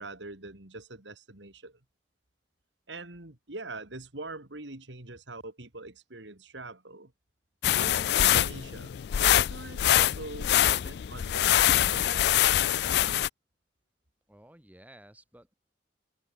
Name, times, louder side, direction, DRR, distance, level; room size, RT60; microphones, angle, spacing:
voice 1, 0.0-1.8 2.9-7.1 7.8-13.3, right 2 dB, 80° right, 3.1 m, -43 dB
sound 1, 7.6-13.3, left 12 dB, 60° left, 0.3 m, -24 dB
voice 2, 14.3-15.5, right 1 dB, 10° right, 1.9 m, -54 dB
head